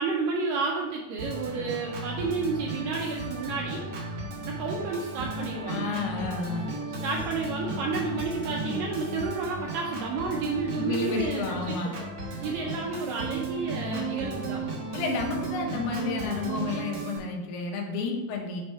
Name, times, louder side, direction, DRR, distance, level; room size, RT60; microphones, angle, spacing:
voice 1, 0.0-3.8 4.4-5.9 7.0-12.1 12.4-14.6, right 4 dB, 85° right, -1 dB, 1.9 m, -31 dB
Organ, 1.2-17.2, right 2 dB, 70° right, 1.4 m, -35 dB
voice 2, 5.7-6.6 10.8-12.0 14.9-18.6, left 4 dB, 80° left, 0 dB, 2.9 m, -31 dB
6.5 x 3.4 x 5.4 m, 1.1 s
omnidirectional pair, 4.6 m